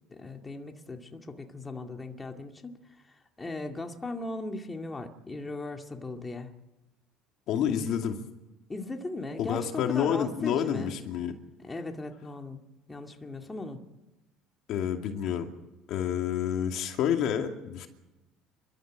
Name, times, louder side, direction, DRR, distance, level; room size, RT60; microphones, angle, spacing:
voice 1, 0.1-2.7 3.4-6.5 8.7-10.9 11.6-12.6 12.9-13.8, left 2 dB, 15° left, 3 dB, 2.3 m, -38 dB
voice 2, 7.5-8.2 9.4-11.4 14.7-15.5 15.9-17.9, left 9 dB, 65° left, 4 dB, 2.5 m, -29 dB
29.0 x 13.0 x 9.1 m, 1.0 s
cardioid pair, 115°, 0 cm